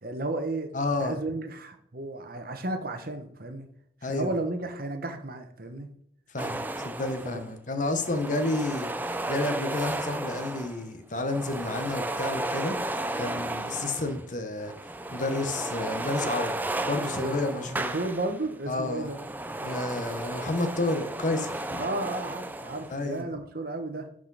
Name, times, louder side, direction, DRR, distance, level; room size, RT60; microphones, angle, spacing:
voice 1, 0.0-0.7 1.0-3.7 4.1-5.9 7.2-7.4 17.2-19.2 21.8-24.1, right 2 dB, 50° right, 6 dB, 1.0 m, -33 dB
voice 2, 0.7-1.2 4.0-4.3 6.3-8.9 9.3-12.8 13.2-17.9 18.7-19.1 19.6-21.8 22.9-23.3, left 2 dB, 40° left, 7 dB, 1.0 m, -30 dB
sound 1, 6.4-7.5 7.8-10.9 11.1-14.3 14.6-18.5 18.8-23.0, right 2 dB, 10° right, 0.4 m, -34 dB
12.0 x 5.0 x 4.0 m, 0.71 s
head